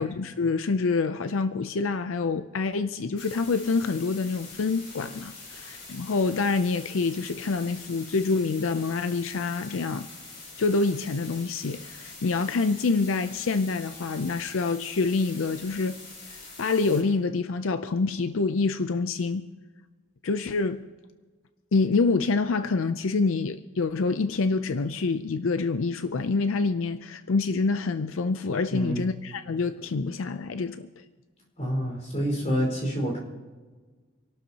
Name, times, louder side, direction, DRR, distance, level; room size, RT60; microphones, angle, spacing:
voice 1, 0.0-10.1 10.6-16.0 16.6-19.5 20.2-20.8 21.7-30.9, left 4 dB, 85° left, 0.5 m, -26 dB
sound 1, 3.2-17.0, left 3 dB, 60° left, 4.6 m, -45 dB
voice 2, 28.7-29.0 31.6-33.2, equal, 35° left, 4.8 m, -28 dB
27.5 x 12.0 x 2.9 m
head